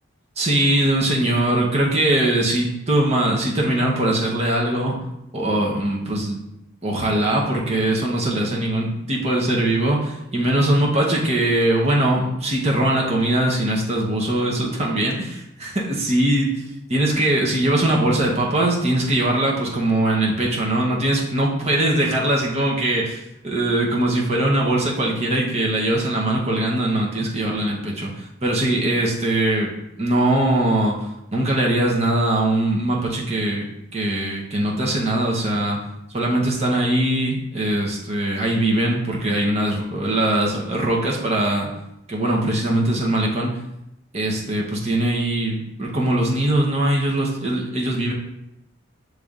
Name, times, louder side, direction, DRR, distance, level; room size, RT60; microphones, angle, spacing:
voice 1, 0.4-4.9 5.3-6.4 6.8-15.2 15.6-16.5 16.9-28.1 28.4-31.0 31.3-33.7 33.9-35.8 36.1-41.7 42.1-43.6 44.1-48.1, right 1 dB, 30° right, -2 dB, 0.8 m, -21 dB
6.7 x 3.3 x 2.4 m, 0.84 s
head